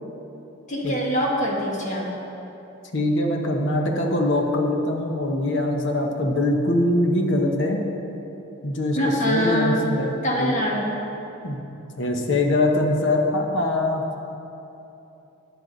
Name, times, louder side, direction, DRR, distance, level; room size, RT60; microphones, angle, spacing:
voice 1, 0.7-2.1 8.9-9.8 10.2-11.0, equal, 35° left, -2 dB, 1.7 m, -24 dB
voice 2, 2.9-7.8 8.6-10.1 10.4-10.6 11.4-11.6 12.0-14.1, left 1 dB, 55° left, 2 dB, 1.2 m, -23 dB
13.0 x 9.6 x 4.1 m, 2.9 s
head